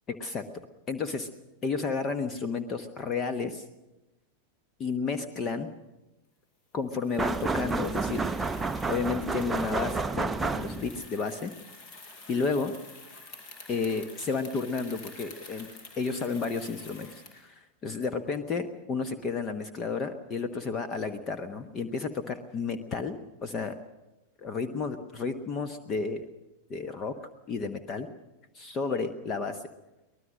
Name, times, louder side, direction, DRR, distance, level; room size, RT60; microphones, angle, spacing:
voice 1, 0.1-0.5 0.9-1.3 1.6-3.6 4.8-5.7 6.7-8.2 8.9-11.5 12.3-12.7 13.7-15.7 16.0-23.8 24.4-26.3 26.7-27.2 27.5-28.1 28.5-29.6, left 4 dB, 30° left, 9 dB, 1.2 m, -32 dB
Bicycle, 7.0-17.5, left 3 dB, 45° left, 5.3 m, -49 dB
sound 1, 7.2-11.0, right 3 dB, 10° right, 0.7 m, -30 dB
24.0 x 19.5 x 6.3 m, 1.0 s
figure-of-eight pair, 90°, 0 cm